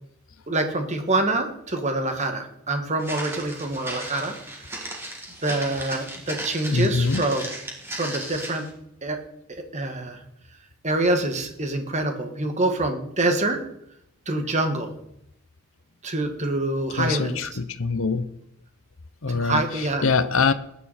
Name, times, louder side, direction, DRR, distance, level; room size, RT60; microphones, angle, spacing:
voice 1, 0.5-4.7 5.4-7.5 7.9-8.7 9.0-9.2 9.5-10.2 10.8-13.6 14.3-14.9 16.0-17.5 19.3-20.1, right 2 dB, 30° right, 5 dB, 1.8 m, -26 dB
Walk footsteps, 3.0-8.7, right 1 dB, 10° right, 2.7 m, -36 dB
voice 2, 6.7-7.2 17.0-18.3 19.2-19.6 20.0-20.5, left 4 dB, 60° left, 12 dB, 0.8 m, -23 dB
19.5 x 9.7 x 4.3 m, 0.77 s
head